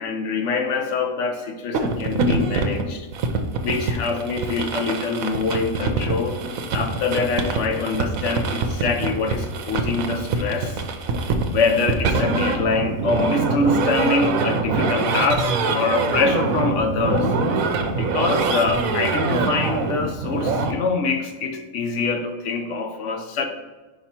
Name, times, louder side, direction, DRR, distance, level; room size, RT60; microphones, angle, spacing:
voice 1, 0.0-3.1 3.6-6.4 6.7-10.8 11.5-17.3 18.0-23.4, left 4 dB, 65° left, 6 dB, 1.0 m, -24 dB
sound 1, 1.7-20.7, right 3 dB, 80° right, 1.1 m, -24 dB
5.2 x 4.9 x 4.3 m, 1.3 s
omnidirectional pair, 1.4 m